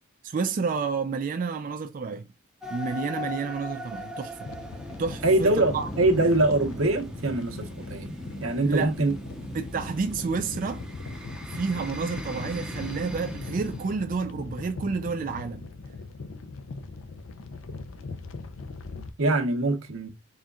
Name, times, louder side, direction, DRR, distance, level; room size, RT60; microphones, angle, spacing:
voice 1, 0.2-2.3 2.7-4.5 5.0-5.9 8.6-8.9 9.5-10.8 11.5-15.7, right 5 dB, 40° right, 0.3 m, -30 dB
sound 1, 2.6-13.9, equal, 5° right, 0.6 m, -38 dB
sound 2, 4.4-19.1, left 3 dB, 75° left, 0.5 m, -40 dB
voice 2, 5.2-8.1 8.4-9.1 19.2-20.1, right 2 dB, 85° right, 1.1 m, -23 dB
4.3 x 3.6 x 2.3 m
head